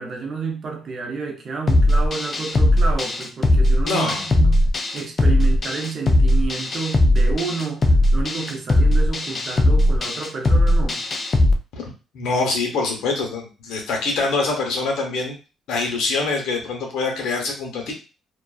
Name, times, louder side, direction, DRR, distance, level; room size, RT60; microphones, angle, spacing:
voice 1, 0.0-4.7 4.9-11.0, right 4 dB, 55° right, 3 dB, 0.7 m, -30 dB
sound 1, 1.7-11.5, left 1 dB, 40° left, 0.4 m, -18 dB
voice 2, 3.8-4.2 11.7-11.9 12.1-15.4 15.7-17.9, left 3 dB, 85° left, 1 dB, 0.8 m, -24 dB
2.4 x 2.3 x 2.3 m, 0.32 s
cardioid pair, 90°, 0 cm